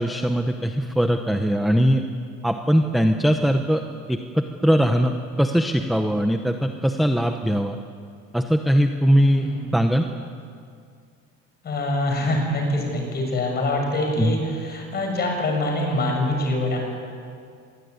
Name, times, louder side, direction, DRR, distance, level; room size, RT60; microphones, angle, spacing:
voice 1, 0.0-2.0 2.4-3.8 4.1-7.8 8.3-9.5 9.7-10.0 14.2-14.4, equal, ahead, 5 dB, 0.9 m, -20 dB
voice 2, 9.2-9.7 11.6-16.8, left 1 dB, 30° left, 2 dB, 6.8 m, -24 dB
26.0 x 22.0 x 9.7 m, 2.3 s
cardioid pair, 170°, 31 cm